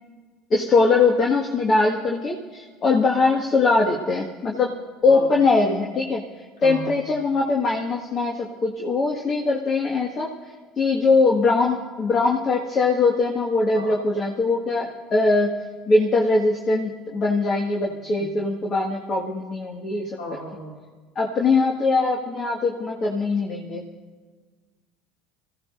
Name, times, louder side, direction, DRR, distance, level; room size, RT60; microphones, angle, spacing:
voice 1, 0.5-6.2 6.6-10.3 10.8-15.5 15.9-20.4 21.2-23.8, left 3 dB, 40° left, -1 dB, 1.8 m, -21 dB
voice 2, 6.6-6.9 13.7-14.0 18.2-18.3 20.2-20.7, equal, 80° left, -2 dB, 2.3 m, -35 dB
25.5 x 16.0 x 2.6 m, 1.4 s
hypercardioid pair, 70°, 0 cm